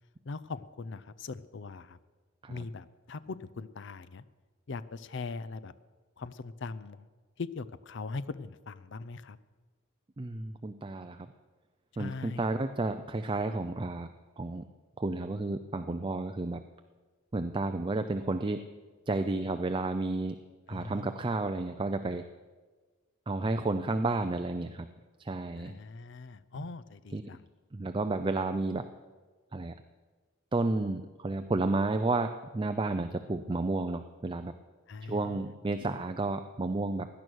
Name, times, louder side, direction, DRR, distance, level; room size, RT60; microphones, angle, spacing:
voice 1, 0.2-2.0 2.5-4.2 4.7-5.7 6.2-7.1 7.4-9.4 11.9-12.5 20.7-21.2 25.5-27.5 34.9-35.4, left 4 dB, 60° left, 15 dB, 0.5 m, -41 dB
voice 2, 10.2-11.3 12.0-14.1 14.4-14.6 15.0-16.6 17.3-18.7 19.1-20.4 20.7-22.3 23.3-24.9 25.2-25.8 27.1-27.2 27.7-28.9 29.5-29.7 30.5-34.5 35.0-37.1, right 2 dB, 25° right, 8 dB, 0.5 m, -31 dB
17.0 x 11.0 x 6.3 m, 1.4 s
head